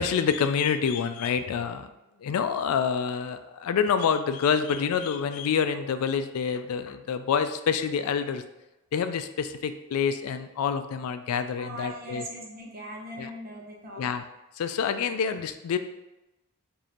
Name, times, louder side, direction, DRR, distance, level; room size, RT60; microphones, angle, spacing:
voice 1, 0.0-1.9 2.2-8.4 8.9-12.3 13.2-13.3 14.0-14.2 14.6-15.8, left 6 dB, 85° left, 10 dB, 0.3 m, -27 dB
voice 2, 11.6-14.0, right 1 dB, 45° right, -1 dB, 0.8 m, -40 dB
5.0 x 2.7 x 2.9 m, 0.98 s
head